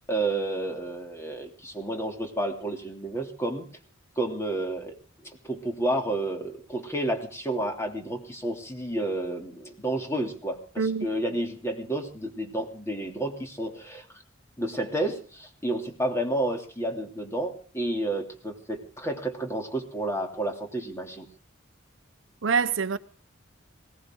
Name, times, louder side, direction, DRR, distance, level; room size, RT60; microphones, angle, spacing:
voice 1, 0.1-3.7 4.2-4.9 5.2-14.0 14.6-21.3, right 1 dB, 15° left, 2.9 m, -30 dB
voice 2, 10.8-11.1 22.4-23.0, right 5 dB, 65° right, 0.7 m, -25 dB
21.0 x 18.0 x 3.8 m
head